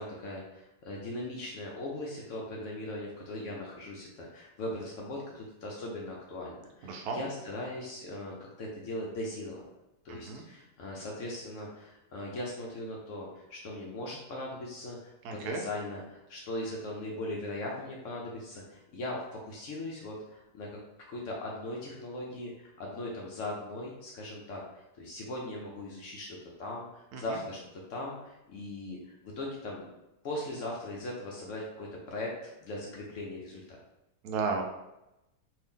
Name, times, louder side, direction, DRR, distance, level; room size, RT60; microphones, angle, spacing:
voice 1, 0.0-9.7 10.0-15.1 15.4-20.8 21.1-27.6 27.9-29.9 30.2-33.8, left 1 dB, 65° left, -2 dB, 0.8 m, -39 dB
voice 2, 6.8-7.2 10.3-10.4 15.2-15.6 27.1-27.4 34.2-34.6, right 4 dB, 75° right, 2 dB, 1.1 m, -33 dB
2.7 x 2.7 x 3.6 m, 0.92 s
omnidirectional pair, 1.7 m